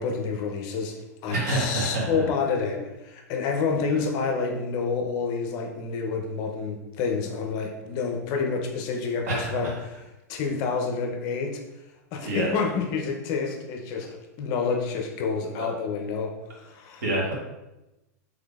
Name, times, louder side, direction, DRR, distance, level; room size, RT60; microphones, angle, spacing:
voice 1, 0.0-9.7 10.3-11.6 12.1-14.1 14.4-17.0, left 5 dB, 45° left, 2 dB, 0.6 m, -28 dB
voice 2, 1.3-2.3 9.3-9.7 12.2-12.5 15.6-15.7 17.0-17.3, right 2 dB, 65° right, -3 dB, 1.4 m, -27 dB
3.6 x 3.3 x 2.4 m, 0.98 s
hypercardioid pair, 120°, 9 cm